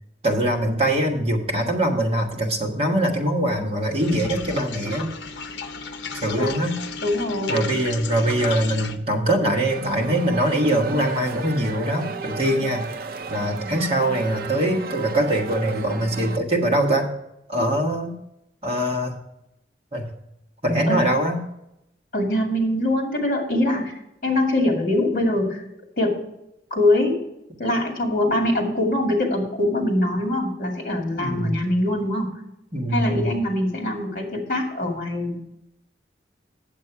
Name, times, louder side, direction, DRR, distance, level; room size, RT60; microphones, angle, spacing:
voice 1, 0.2-5.1 6.1-6.8 7.5-12.9 13.3-17.1 17.5-18.1 18.6-19.1 19.9-20.1 20.6-21.4 31.2-31.6 32.7-33.3, right 1 dB, 35° right, 0 dB, 1.4 m, -23 dB
sound 1, 4.0-9.0, left 4 dB, 85° left, 0.6 m, -34 dB
voice 2, 7.0-7.7 12.5-12.6 20.9-21.0 22.1-23.9 24.2-25.6 26.0-26.1 26.7-27.2 27.6-32.3 32.9-35.4, left 1 dB, 50° left, 1 dB, 2.1 m, -23 dB
sound 2, 9.7-16.4, right 4 dB, 55° right, 0.5 m, -34 dB
8.4 x 7.4 x 4.7 m, 0.83 s
head